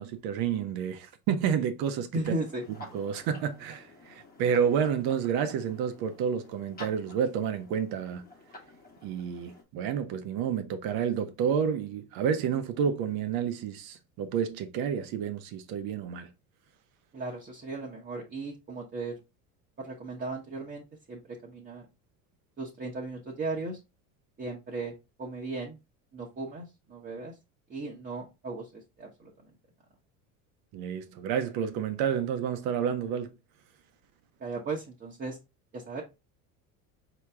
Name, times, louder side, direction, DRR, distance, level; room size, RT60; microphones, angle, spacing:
voice 1, 0.0-2.1 2.9-8.2 9.0-16.3 30.7-33.3, right 7 dB, 60° right, 0.9 m, -30 dB
voice 2, 2.1-2.6 17.1-19.2 19.8-21.8 22.6-23.8 24.4-24.9 25.2-25.8 26.1-27.3 27.7-29.5 34.4-35.4 35.7-36.0, right 3 dB, 25° right, 1.2 m, -36 dB
sound 1, 2.2-9.6, left 1 dB, 20° left, 1.4 m, -50 dB
4.4 x 3.0 x 3.5 m
supercardioid pair, 90°, 41 cm